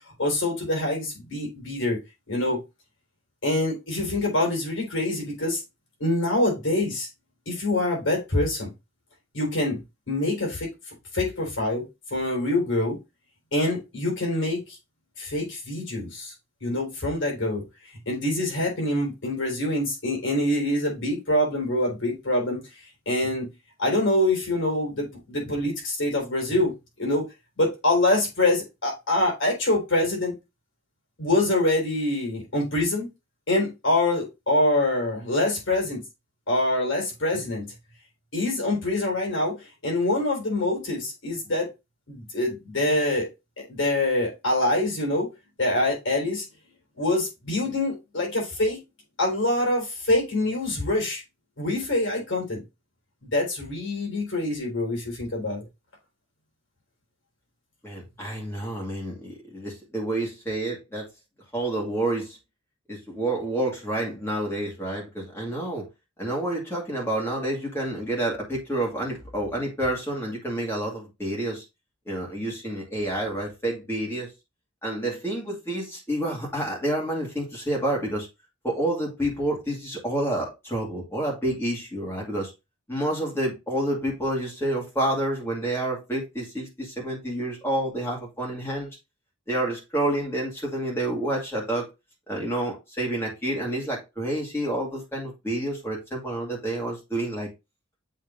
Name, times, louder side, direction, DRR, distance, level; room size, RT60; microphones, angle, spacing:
voice 1, 0.2-2.0 2.3-2.6 3.4-5.6 6.0-7.1 7.5-8.7 9.3-9.8 10.1-10.7 11.1-11.8 12.1-13.0 13.5-14.8 15.2-16.3 16.6-17.6 18.1-22.7 23.1-23.5 23.8-26.7 27.0-27.3 27.6-30.3 31.2-33.1 33.5-36.0 36.5-37.7 38.3-41.7 42.1-43.3 43.6-45.3 45.6-46.4 47.0-48.8 49.2-51.2 51.6-52.6 53.2-55.7, left 1 dB, 60° left, 4.2 m, -25 dB
voice 2, 57.8-61.1 61.5-62.4 62.9-65.8 66.2-71.6 72.1-74.3 74.8-78.3 78.6-82.5 82.9-88.9 89.5-91.9 92.3-97.5, right 1 dB, 10° left, 2.4 m, -29 dB
7.6 x 3.7 x 3.7 m
head